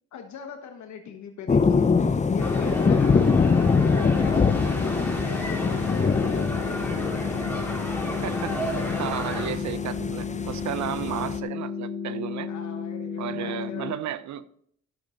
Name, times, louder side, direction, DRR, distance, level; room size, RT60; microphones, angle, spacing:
voice 1, 0.1-4.7 5.2-6.6 7.1-7.6 12.4-13.9, left 7 dB, 70° left, 1.4 m, -40 dB
sound 1, 1.5-11.4, left 5 dB, 25° left, 0.7 m, -24 dB
sound 2, 2.4-9.5, equal, 5° left, 3.7 m, -33 dB
sound 3, 3.9-13.9, left 6 dB, 50° left, 2.4 m, -33 dB
voice 2, 8.2-8.7 9.0-12.5 13.2-14.5, right 11 dB, 65° right, 0.8 m, -33 dB
12.5 x 7.0 x 4.0 m
cardioid pair, 90°, 30 cm